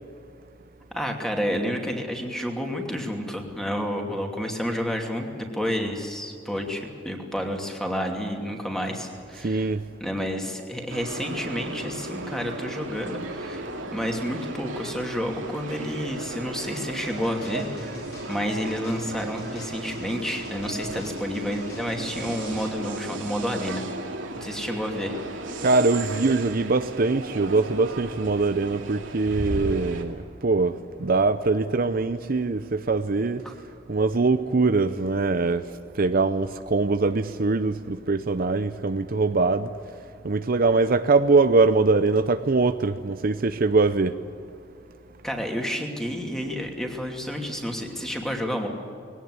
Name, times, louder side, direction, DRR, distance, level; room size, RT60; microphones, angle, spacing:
voice 1, 0.9-9.7 10.0-13.6 13.9-17.9 18.3-25.2 33.4-33.5 45.2-48.7, equal, 5° left, 2.7 m, -30 dB
voice 2, 9.4-9.9 25.6-33.4 33.9-39.7 40.2-44.2, right 3 dB, 50° right, 0.6 m, -22 dB
sound 1, 10.9-30.0, right 2 dB, 85° right, 2.5 m, -35 dB
sound 2, 17.0-22.8, left 2 dB, 55° left, 6.7 m, -44 dB
21.0 x 18.0 x 9.7 m
head